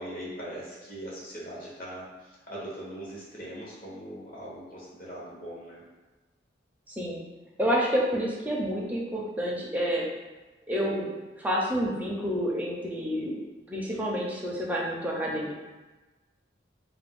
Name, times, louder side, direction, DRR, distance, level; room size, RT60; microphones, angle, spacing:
voice 1, 0.0-2.1 2.5-5.8 13.9-14.3, right 1 dB, 50° left, -6 dB, 0.9 m, -40 dB
voice 2, 6.9-7.2 7.6-10.1 10.7-11.1 11.4-13.4 13.7-15.5, equal, 10° right, -3 dB, 0.4 m, -29 dB
2.4 x 2.1 x 3.6 m, 1.2 s
head